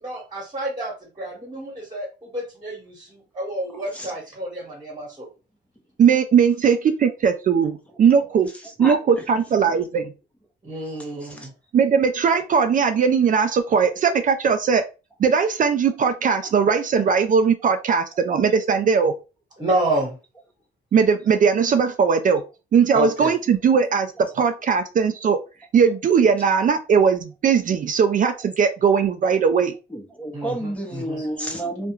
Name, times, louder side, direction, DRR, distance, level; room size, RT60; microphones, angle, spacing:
voice 1, 0.0-5.3 10.6-11.5 19.6-20.2 22.9-23.3 30.3-31.3, right 1 dB, 20° right, 1.2 m, -29 dB
voice 2, 6.0-8.5 8.8-10.1 11.7-14.8 15.2-19.1 20.9-22.4 22.7-25.4 25.7-29.7, right 6 dB, 40° right, 0.4 m, -19 dB
voice 3, 29.9-31.9, right 1 dB, 5° left, 0.8 m, -30 dB
2.3 x 2.1 x 2.9 m
cardioid pair, 90°, 20 cm